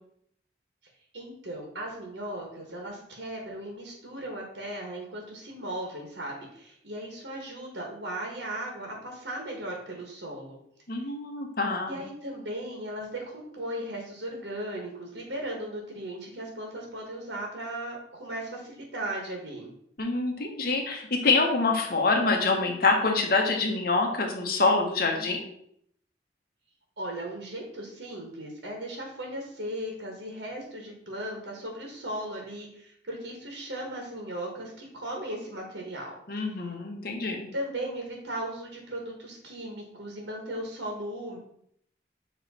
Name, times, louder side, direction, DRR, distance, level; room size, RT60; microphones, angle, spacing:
voice 1, 1.1-10.6 11.9-19.7 27.0-36.1 37.5-41.4, right 1 dB, 80° right, 0 dB, 1.4 m, -37 dB
voice 2, 10.9-12.0 20.0-25.4 36.3-37.5, left 3 dB, 55° left, 2 dB, 1.1 m, -26 dB
7.1 x 3.1 x 4.3 m, 0.69 s
head